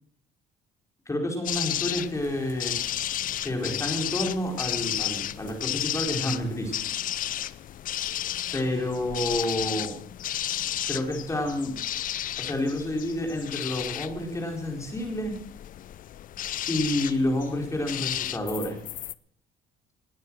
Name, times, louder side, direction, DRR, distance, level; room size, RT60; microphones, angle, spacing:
voice 1, 1.1-2.8 3.4-6.7 8.5-9.9 10.9-11.7 12.4-15.3 16.7-18.8, left 1 dB, 15° left, 2 dB, 4.7 m, -29 dB
sound 1, 1.4-19.1, left 12 dB, 55° left, 0.6 m, -33 dB
20.0 x 9.3 x 6.2 m, 0.64 s
cardioid pair, 110°, 17 cm